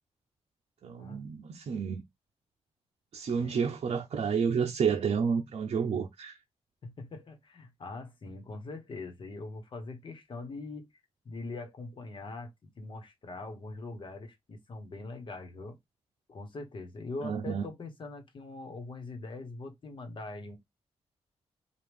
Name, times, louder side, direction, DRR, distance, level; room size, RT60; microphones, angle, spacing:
voice 1, 0.8-2.0 3.1-6.4 17.2-17.6, right 6 dB, 60° right, 0.6 m, -30 dB
voice 2, 6.8-10.9 11.2-12.5 12.8-15.8 16.3-20.6, left 3 dB, 45° left, 1.2 m, -42 dB
4.8 x 2.5 x 3.5 m
wide cardioid pair, 130°, 11 cm